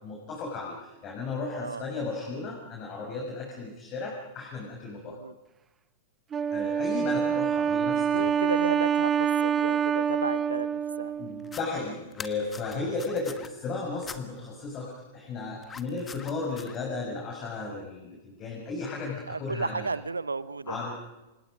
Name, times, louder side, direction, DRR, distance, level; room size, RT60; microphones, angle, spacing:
voice 1, 0.0-5.2 6.5-8.3 11.2-19.9 20.7-21.0, left 3 dB, 35° left, 0 dB, 6.1 m, -35 dB
voice 2, 5.0-5.3 8.0-11.1 19.3-20.8, right 4 dB, 85° right, 17 dB, 0.9 m, -33 dB
Wind instrument woodwind instrument, 6.3-11.7, right 8 dB, 20° right, 1.0 m, -26 dB
sound 1, 11.4-11.6 12.1-13.5 14.0-14.2 15.6-16.8, left 5 dB, 15° left, 1.7 m, -43 dB
29.0 x 26.5 x 5.2 m, 1.0 s
figure-of-eight pair, 100°, 0 cm